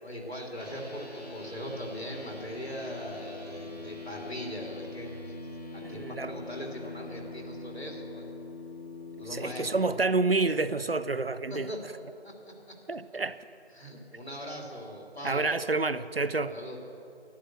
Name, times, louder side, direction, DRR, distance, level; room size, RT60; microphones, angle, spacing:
voice 1, 0.0-5.3 5.7-8.2 9.2-9.7 11.5-11.8 12.2-12.3 13.7-15.5 16.5-16.8, equal, 70° left, 0 dB, 3.2 m, -40 dB
sound 1, 0.5-9.9, left 2 dB, 35° left, 1.7 m, -43 dB
voice 2, 5.8-6.3 9.3-11.7 12.9-13.4 15.2-16.5, right 3 dB, 65° right, 14 dB, 0.6 m, -28 dB
11.5 x 10.0 x 8.0 m, 2.7 s
figure-of-eight pair, 175°, 33 cm